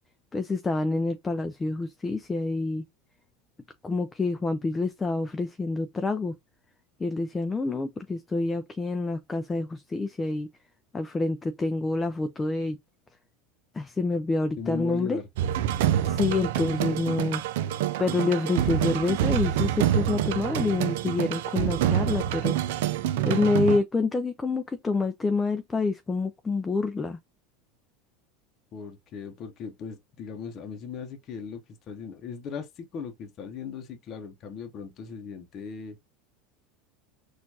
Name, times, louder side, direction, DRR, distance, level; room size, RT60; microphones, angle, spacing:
voice 1, 0.3-2.8 3.8-6.3 7.0-10.5 10.9-12.8 13.7-15.2 16.0-17.4 18.0-22.6 23.2-27.2, left 3 dB, 15° left, 0.4 m, -27 dB
voice 2, 14.6-15.3 28.7-36.0, left 6 dB, 45° left, 0.8 m, -38 dB
sound 1, 15.4-23.8, right 11 dB, 75° right, 0.4 m, -26 dB
4.3 x 2.5 x 2.7 m
supercardioid pair, 105°, 0 cm